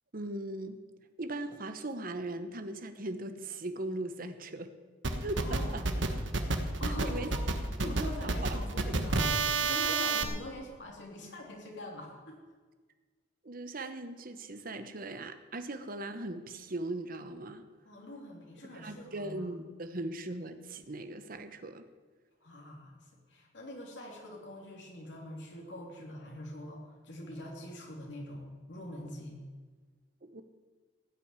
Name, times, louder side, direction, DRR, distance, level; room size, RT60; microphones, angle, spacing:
voice 1, 0.1-0.8 1.2-4.7 5.2-5.8 6.8-7.3 7.8-8.6 8.9-9.0 9.9-10.0 13.4-17.7 18.7-21.9 30.2-30.4, right 2 dB, 50° right, 9 dB, 1.0 m, -39 dB
sound 1, 5.0-10.2, right 3 dB, 85° right, 1.3 m, -30 dB
voice 2, 5.4-5.9 6.8-7.3 7.8-12.4 17.9-19.4 22.4-29.4, left 1 dB, 70° left, -1 dB, 3.4 m, -44 dB
16.0 x 6.1 x 9.6 m, 1.4 s
head